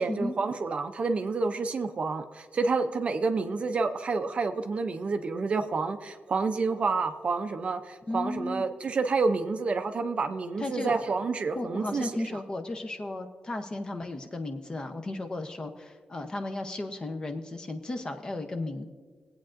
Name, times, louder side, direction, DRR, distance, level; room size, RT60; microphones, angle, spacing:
voice 1, 0.0-12.4, right 4 dB, 45° right, 8 dB, 0.5 m, -29 dB
voice 2, 8.1-8.6 10.6-10.9 11.5-18.9, left 2 dB, 25° left, 6 dB, 0.8 m, -34 dB
21.5 x 8.6 x 2.6 m, 1.5 s
wide cardioid pair, 155°, 3 cm